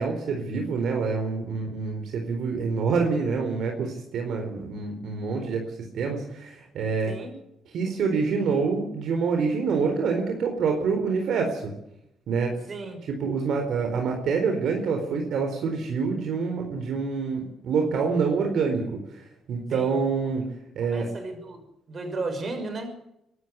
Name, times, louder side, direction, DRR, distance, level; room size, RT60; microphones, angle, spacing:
voice 1, 0.0-7.1 7.7-11.7 12.3-12.6 13.2-19.0 19.5-20.5 20.7-21.1, right 5 dB, 70° right, 3 dB, 4.2 m, -26 dB
voice 2, 12.7-13.1 19.7-20.0 20.8-21.6 21.9-22.9, right 3 dB, 40° right, 6 dB, 6.4 m, -34 dB
24.5 x 12.5 x 9.6 m, 0.82 s
cardioid pair, 90°, 0 cm